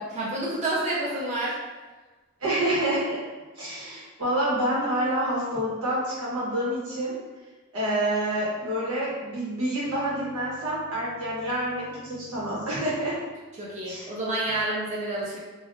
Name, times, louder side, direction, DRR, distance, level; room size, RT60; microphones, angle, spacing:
voice 1, 0.0-1.6 13.6-15.4, right 1 dB, 35° right, -5 dB, 0.5 m, -29 dB
voice 2, 2.4-3.0 3.6-7.2 7.7-13.2 13.9-14.1, right 1 dB, 90° right, -7 dB, 1.2 m, -27 dB
3.3 x 2.4 x 2.6 m, 1.3 s
head